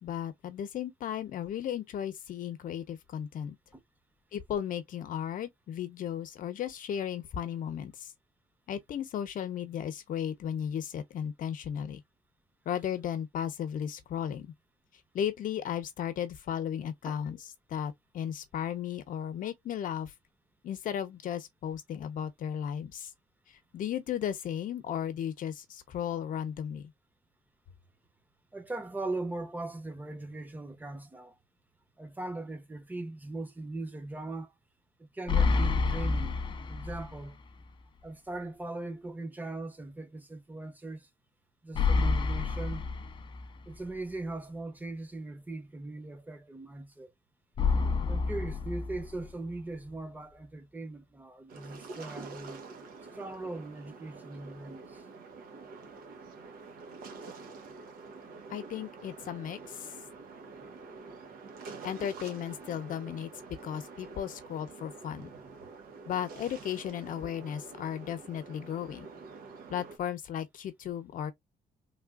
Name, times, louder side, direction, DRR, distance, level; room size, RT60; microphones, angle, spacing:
voice 1, 0.0-3.6 4.3-8.1 8.7-12.0 12.7-14.5 15.1-17.4 17.7-20.1 20.6-23.1 23.7-26.9 58.5-59.9 61.8-63.3 63.6-65.3 66.1-69.1 69.7-71.3, left 9 dB, 65° left, 0.7 m, -35 dB
voice 2, 28.5-31.4 32.0-34.5 35.0-36.4 36.7-37.4 38.0-41.1 41.6-42.8 43.7-47.1 48.1-52.6 53.1-55.0, right 2 dB, 10° right, 0.8 m, -39 dB
sound 1, 35.3-37.3 37.6-37.7 41.7-43.7 47.6-49.5, left 4 dB, 35° left, 0.5 m, -29 dB
sound 2, 51.5-70.0, right 4 dB, 90° right, 1.0 m, -47 dB
3.3 x 2.4 x 2.3 m
cardioid pair, 130°, 15 cm